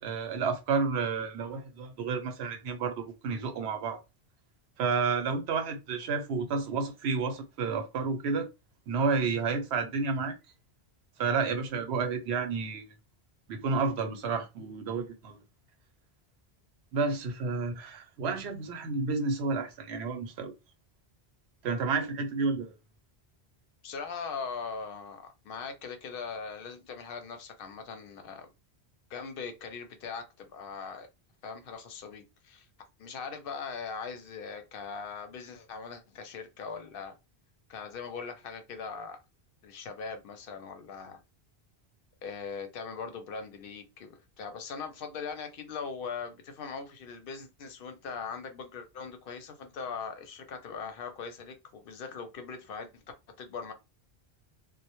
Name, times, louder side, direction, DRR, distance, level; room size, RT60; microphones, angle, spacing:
voice 1, 0.0-4.0 4.8-8.5 8.9-10.3 11.2-12.8 13.5-15.4 16.9-20.5 21.6-22.7, right 4 dB, 90° right, 0.9 m, -30 dB
voice 2, 23.8-28.5 29.1-31.1 31.4-32.7 33.0-37.2 37.7-39.2 39.6-41.2 42.2-53.0 53.4-53.7, left 5 dB, 65° left, 0.7 m, -40 dB
2.1 x 2.1 x 2.8 m
omnidirectional pair, 1.1 m